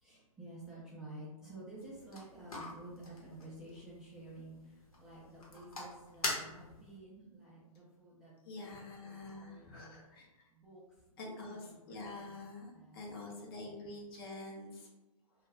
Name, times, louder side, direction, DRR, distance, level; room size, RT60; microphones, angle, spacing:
voice 1, 0.0-8.8 9.0-10.0 10.5-10.8 11.1-12.3 12.7-13.4, right 2 dB, 5° right, -9 dB, 0.4 m, -52 dB
sound 1, 1.8-7.0, left 2 dB, 75° left, 1.0 m, -44 dB
voice 2, 8.4-10.4 11.2-14.9, left 2 dB, 40° left, -1 dB, 0.7 m, -47 dB
2.3 x 2.2 x 3.3 m, 1.1 s
figure-of-eight pair, 125°, 18 cm